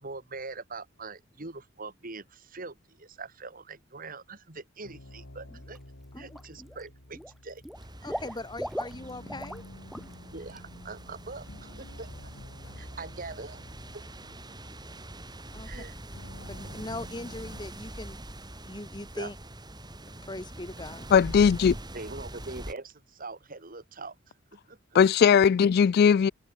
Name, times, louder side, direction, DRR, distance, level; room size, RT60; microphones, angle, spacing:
voice 1, 0.0-5.8 6.2-7.6 8.0-8.2 10.3-12.3 12.8-13.6 13.9-14.0 15.6-15.9 19.1-19.3 21.9-24.2 24.5-24.8, right 3 dB, 45° right, 2.5 m, -42 dB
sound 1, 4.8-17.7, left 1 dB, 85° left, 2.6 m, -50 dB
Water / Liquid, 5.5-5.8 6.1-6.8 7.1-9.6 9.9-10.1 10.5-10.6, equal, ahead, 3.7 m, -38 dB
sound 2, 7.7-22.7, right 1 dB, 20° right, 6.4 m, -43 dB
voice 2, 8.0-9.6 15.5-15.7 16.5-18.2 18.6-19.4 20.2-21.1, left 2 dB, 20° left, 2.3 m, -40 dB
voice 3, 21.1-21.8 24.9-26.3, left 7 dB, 50° left, 0.3 m, -19 dB
head